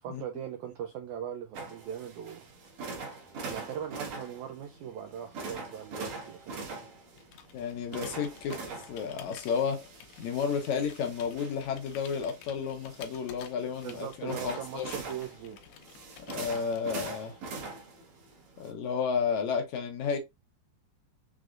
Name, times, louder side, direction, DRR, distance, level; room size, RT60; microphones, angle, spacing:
voice 1, 0.0-2.5 3.4-6.9 13.8-15.6, right 9 dB, 75° right, 1.8 m, -40 dB
sound 1, 1.5-18.7, right 3 dB, 60° right, 2.4 m, -43 dB
Computer keyboard, 7.2-17.4, left 9 dB, 90° left, 2.4 m, -52 dB
voice 2, 7.5-8.6 8.9-9.9 10.2-15.0 16.3-17.4 18.6-20.2, left 6 dB, 70° left, 1.9 m, -32 dB
6.1 x 3.3 x 2.4 m
omnidirectional pair, 3.9 m